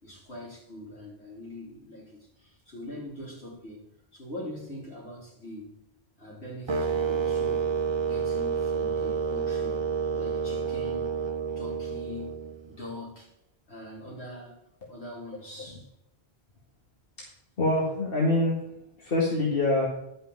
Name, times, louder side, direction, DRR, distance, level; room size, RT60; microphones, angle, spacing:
voice 1, 0.0-3.8 4.1-5.8 6.2-7.7 8.0-9.8 10.1-11.1 11.6-13.3 13.7-14.6 14.9-15.9, left 1 dB, 80° left, -5 dB, 4.1 m, -42 dB
sound 1, 6.7-12.8, right 6 dB, 40° right, 0.4 m, -29 dB
voice 2, 17.6-18.6 19.0-19.9, left 2 dB, 60° left, -4 dB, 2.3 m, -25 dB
11.5 x 5.8 x 7.4 m, 0.85 s
omnidirectional pair, 1.1 m